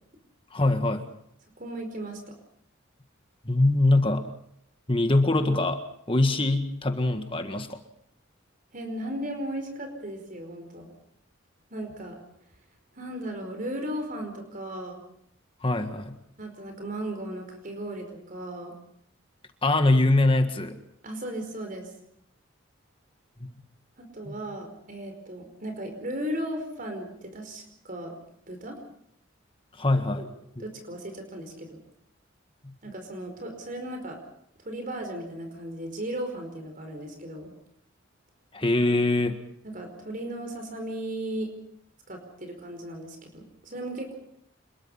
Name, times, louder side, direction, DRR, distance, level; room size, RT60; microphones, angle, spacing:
voice 1, 0.5-1.0 3.4-4.3 4.9-5.8 6.1-7.8 15.6-16.2 19.6-20.8 24.2-24.4 29.8-30.3 32.6-32.7 38.5-39.4, left 2 dB, 25° left, 7 dB, 1.7 m, -23 dB
voice 2, 1.6-2.3 8.7-10.9 11.7-12.2 12.9-15.0 16.4-18.7 21.0-21.9 24.0-28.1 28.5-28.8 29.9-30.3 30.6-31.8 32.8-34.2 34.6-37.5 39.6-41.5 42.1-44.1, right 1 dB, 45° right, 4 dB, 5.0 m, -36 dB
27.0 x 22.0 x 5.6 m, 0.72 s
head